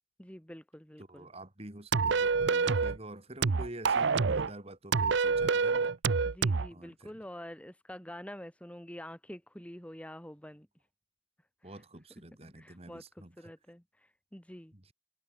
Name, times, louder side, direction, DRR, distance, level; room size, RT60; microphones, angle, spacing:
voice 1, 0.2-1.3 6.2-10.7 11.6-11.8 12.4-14.7, equal, 5° left, 1.5 m, -47 dB
voice 2, 1.1-5.9 6.7-7.1 11.6-13.3 14.7-14.9, right 1 dB, 30° right, 2.7 m, -47 dB
sound 1, 1.9-3.0 3.4-4.5 4.9-6.7, right 5 dB, 65° right, 0.6 m, -27 dB
head